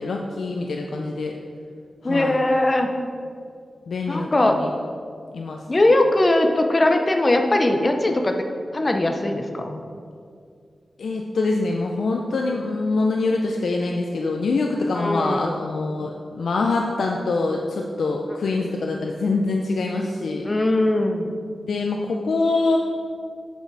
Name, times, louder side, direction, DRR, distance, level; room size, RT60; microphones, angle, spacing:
voice 1, 0.0-1.3 2.0-2.4 3.9-4.3 4.6-4.7 5.3-5.6 11.0-20.5 21.7-22.8, left 3 dB, 80° left, 1 dB, 0.5 m, -24 dB
voice 2, 2.0-2.9 4.1-4.6 5.7-8.4 8.7-9.8 14.9-15.6 20.4-21.3, left 1 dB, 25° left, 5 dB, 0.6 m, -20 dB
8.1 x 6.3 x 4.0 m, 2.2 s
wide cardioid pair, 150°, 0 cm